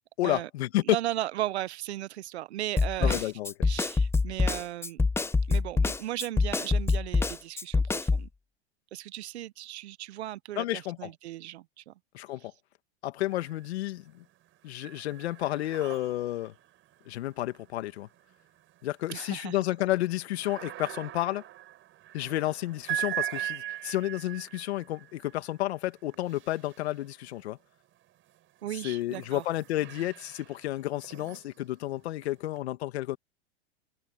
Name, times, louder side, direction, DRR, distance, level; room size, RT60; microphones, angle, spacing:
voice 1, 0.2-0.8 3.0-3.5 10.6-11.1 12.1-12.5 13.0-14.2 14.6-16.5 17.1-18.1 18.8-21.4 22.1-27.6 28.8-33.2, left 15 dB, 75° left, 1.9 m, -31 dB
voice 2, 0.8-3.3 3.6-5.0 5.5-8.3 8.9-11.9 19.1-19.6 28.6-29.4, right 14 dB, 80° right, 1.2 m, -36 dB
Snare drum, 2.8-8.3, left 4 dB, 10° left, 0.7 m, -25 dB
sound 1, 13.3-14.0 14.3-27.5 28.1-32.6, right 14 dB, 35° right, 6.7 m, -41 dB
hypercardioid pair, 120°, 33 cm